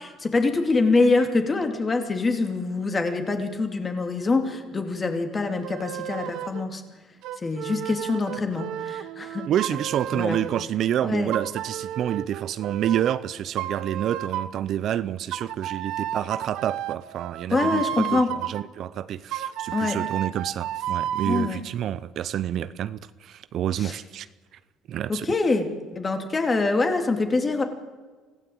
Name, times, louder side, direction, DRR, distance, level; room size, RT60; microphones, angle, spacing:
voice 1, 0.0-6.8 7.4-9.5 10.1-10.4 11.0-11.3 17.5-18.3 19.7-20.0 21.3-21.6 23.8-23.9 25.1-25.7 25.9-27.6, left 3 dB, 20° left, 2.9 m, -24 dB
sound 1, 5.6-6.6 7.2-10.6 11.3-13.2 13.6-14.6 15.3-18.6 19.3-21.5, right 11 dB, 70° right, 1.1 m, -32 dB
voice 2, 9.5-24.3 24.9-25.3, right 10 dB, 50° right, 0.7 m, -28 dB
25.0 x 16.0 x 8.8 m
cardioid pair, 125°, 0 cm